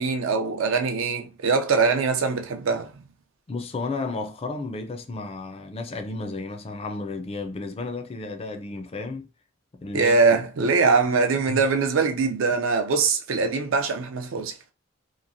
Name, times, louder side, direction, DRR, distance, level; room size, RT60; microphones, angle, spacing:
voice 1, 0.0-2.9 9.9-14.5, right 4 dB, 80° right, 0.5 m, -22 dB
voice 2, 3.5-9.3 9.8-10.4 11.5-11.6, left 3 dB, 30° left, 0.4 m, -33 dB
3.0 x 2.3 x 2.5 m
head